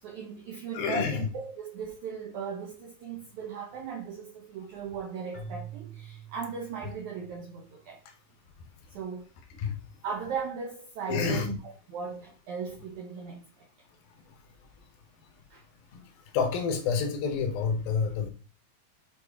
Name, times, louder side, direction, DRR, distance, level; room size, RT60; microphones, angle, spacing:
voice 1, 0.0-8.0 8.9-9.3 10.0-13.7 15.5-15.6, right 5 dB, 85° right, 1.7 m, -37 dB
voice 2, 0.7-1.3 9.6-9.8 11.1-11.6 15.9-16.0 16.3-18.3, left 5 dB, 70° left, 2.7 m, -28 dB
Keyboard (musical), 5.3-7.6, right 6 dB, 35° left, 0.7 m, -45 dB
8.9 x 3.1 x 4.7 m
omnidirectional pair, 4.7 m